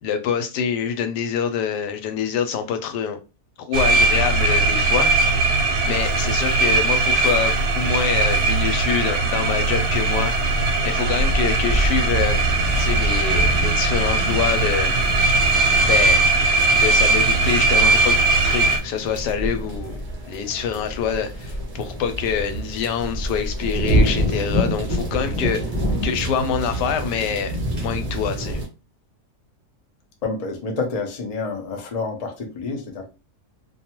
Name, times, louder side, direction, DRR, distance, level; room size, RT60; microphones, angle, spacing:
voice 1, 0.0-3.2 3.7-5.6 5.8-10.3 10.8-12.5 12.8-14.9 15.8-16.2 16.7-18.2 18.4-20.0 20.3-25.6 26.0-27.5 27.8-28.6, left 7 dB, 90° left, 1.2 m, -25 dB
sound 1, 3.7-18.8, right 3 dB, 75° right, 1.0 m, -19 dB
sound 2, 11.1-28.6, right 1 dB, 40° right, 0.5 m, -27 dB
voice 2, 30.2-33.1, left 3 dB, 65° left, 0.3 m, -28 dB
2.6 x 2.3 x 2.9 m
omnidirectional pair, 1.7 m